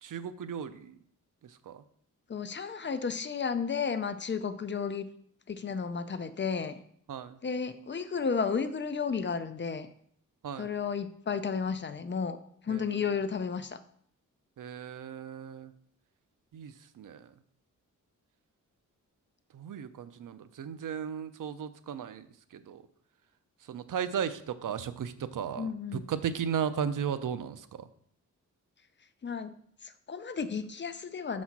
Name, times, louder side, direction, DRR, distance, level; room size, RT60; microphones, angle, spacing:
voice 1, 0.0-1.0 1.7-1.8 7.1-7.4 10.4-10.7 12.7-12.9 14.6-15.7 16.5-17.3 19.5-22.3 22.5-22.8 23.7-27.9, right 8 dB, 80° right, 12 dB, 0.6 m, -35 dB
voice 2, 2.3-5.1 5.5-6.8 7.4-9.9 10.6-12.4 12.6-13.8 25.6-26.1 29.2-29.5 29.8-31.4, left 6 dB, 35° left, 11 dB, 0.5 m, -33 dB
5.9 x 4.2 x 5.9 m, 0.64 s
wide cardioid pair, 125°, 31 cm